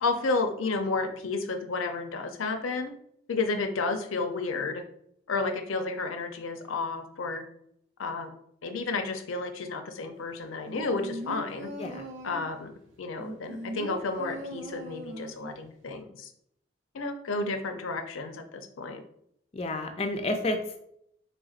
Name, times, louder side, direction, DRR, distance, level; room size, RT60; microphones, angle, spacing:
voice 1, 0.0-2.9 3.3-4.8 5.3-7.4 8.0-8.3 8.6-11.7 12.2-12.7 13.0-16.3 16.9-19.0, left 3 dB, 90° left, 7 dB, 0.5 m, -31 dB
sound 1, 10.7-12.6 13.2-15.6 15.9-16.0, equal, 80° right, 0.6 m, -39 dB
voice 2, 19.5-20.8, left 2 dB, 30° left, 5 dB, 0.3 m, -30 dB
3.9 x 3.4 x 2.4 m, 0.72 s
head